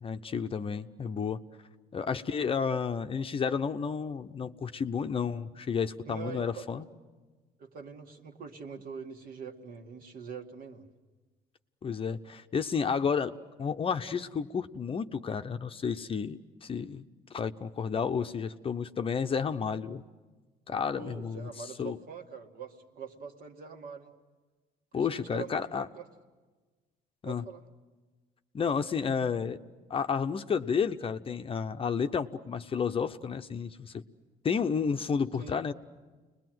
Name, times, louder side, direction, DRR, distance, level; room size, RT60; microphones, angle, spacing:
voice 1, 0.0-1.4 1.9-6.9 11.8-17.1 17.3-20.0 20.7-21.5 21.8-22.0 24.9-25.9 27.2-27.5 28.5-29.6 29.9-34.0 34.4-35.7, left 6 dB, 35° left, 8 dB, 0.7 m, -31 dB
voice 2, 6.1-6.9 7.6-10.9 20.9-24.1 24.9-26.1 27.2-27.6 35.4-35.6, right 6 dB, 60° right, 4 dB, 2.0 m, -44 dB
29.0 x 21.0 x 7.8 m, 1.3 s
cardioid pair, 110°, 17 cm